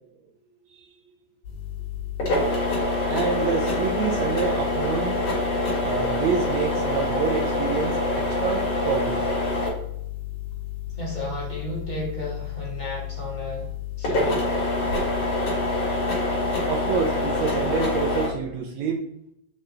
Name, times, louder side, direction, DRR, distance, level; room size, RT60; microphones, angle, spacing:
sound 1, 1.5-18.3, left 2 dB, 45° left, 3.2 m, -26 dB
voice 1, 3.1-5.2 5.8-9.2 16.7-19.0, right 6 dB, 75° right, 1 dB, 1.7 m, -27 dB
voice 2, 11.0-13.7 14.0-14.5, left 1 dB, 20° left, -5 dB, 1.1 m, -33 dB
6.7 x 5.5 x 3.1 m, 0.76 s
omnidirectional pair, 4.1 m